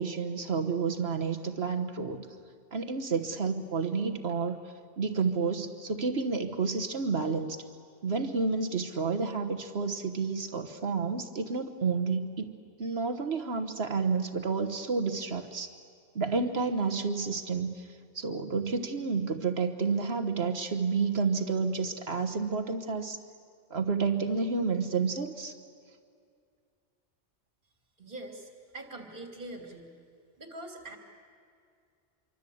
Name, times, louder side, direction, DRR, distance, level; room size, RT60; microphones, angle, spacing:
voice 1, 0.0-2.3 2.7-4.6 5.0-7.6 8.0-15.7 16.1-17.9 18.1-23.2 23.7-25.6, right 4 dB, 60° right, 6 dB, 1.5 m, -30 dB
voice 2, 28.0-29.9 30.4-31.0, right 2 dB, 45° right, 3 dB, 3.1 m, -43 dB
26.0 x 24.5 x 8.6 m, 2.3 s
omnidirectional pair, 1.2 m